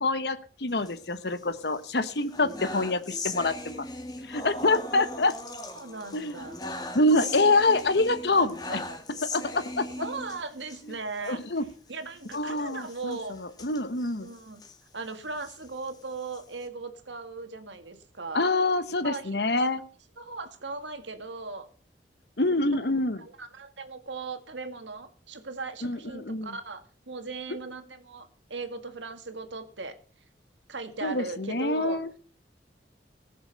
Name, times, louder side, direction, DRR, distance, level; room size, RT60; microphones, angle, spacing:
voice 1, 0.0-3.8 4.3-5.4 6.1-6.4 6.9-8.8 9.3-9.8 11.2-11.6 12.3-14.3 18.3-19.8 22.4-23.2 25.8-26.5 31.0-32.1, left 2 dB, 65° left, 12 dB, 1.1 m, -26 dB
sound 1, 0.7-1.6 2.0-10.8 11.2-11.3 11.6-11.7 12.2-14.8 15.3-16.7, left 2 dB, 20° left, 2.0 m, -39 dB
voice 2, 5.8-6.7 7.2-7.5 8.4-9.0 10.0-11.4 11.9-13.4 14.2-14.6 14.9-18.5 19.0-19.3 19.6-19.7 20.2-21.7 23.2-26.8 27.1-29.9 30.7-32.0, right 3 dB, 90° right, 8 dB, 2.0 m, -38 dB
19.0 x 6.8 x 6.8 m, 0.41 s
head